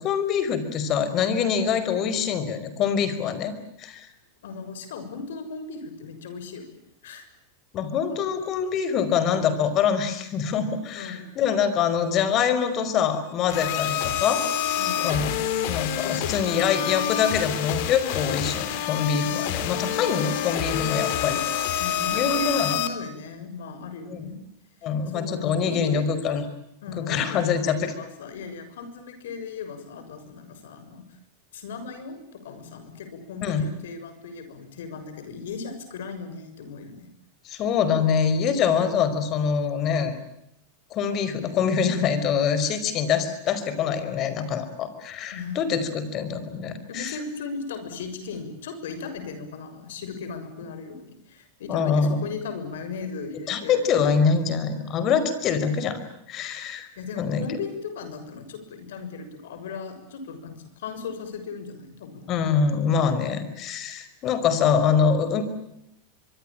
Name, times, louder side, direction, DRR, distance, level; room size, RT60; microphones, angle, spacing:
voice 1, 0.0-3.5 3.8-4.1 7.7-15.3 15.7-21.8 22.1-22.8 24.1-24.3 24.8-26.4 26.9-27.9 33.4-33.6 37.4-40.1 40.9-47.2 51.7-52.2 53.5-56.0 56.3-56.9 57.2-57.5 62.3-65.6, left 6 dB, 40° left, 12 dB, 5.1 m, -24 dB
voice 2, 4.4-6.8 7.0-7.3 11.0-11.4 14.8-15.3 16.0-16.6 19.2-19.6 21.8-24.4 25.1-26.1 26.8-31.0 31.5-37.1 45.3-45.8 46.9-53.8 57.0-62.2, left 4 dB, 80° left, 9 dB, 6.7 m, -37 dB
sound 1, 13.5-22.9, left 10 dB, 60° left, 3.7 m, -27 dB
25.5 x 23.5 x 8.9 m, 0.81 s
hypercardioid pair, 120°, 0 cm